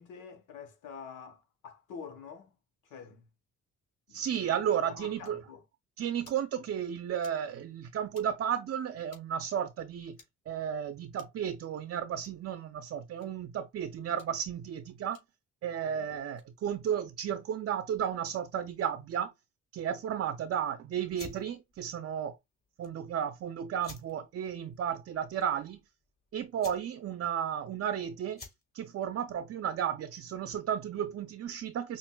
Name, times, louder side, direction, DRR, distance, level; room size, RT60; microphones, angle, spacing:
voice 1, 0.0-2.5 2.9-3.3 4.1-4.2 4.9-5.6 15.8-16.1, left 6 dB, 90° left, 1.1 m, -47 dB
voice 2, 4.1-5.4 6.0-10.2 10.5-15.2 15.6-19.3 19.7-22.4 22.8-25.8 26.3-28.4 28.7-32.0, right 9 dB, 50° right, 0.5 m, -33 dB
sound 1, 5.2-5.3 6.1-6.4 7.2-7.4 8.1-8.3 9.1-9.2 10.1-10.3 11.1-11.4 12.1-12.3 13.2-13.3 14.1-14.3 15.1-15.2 16.2-16.5, left 3 dB, 55° left, 2.8 m, -58 dB
sound 2, 21.1-30.6, left 3 dB, 30° left, 1.8 m, -54 dB
5.8 x 2.5 x 2.3 m
cardioid pair, 90°, 30 cm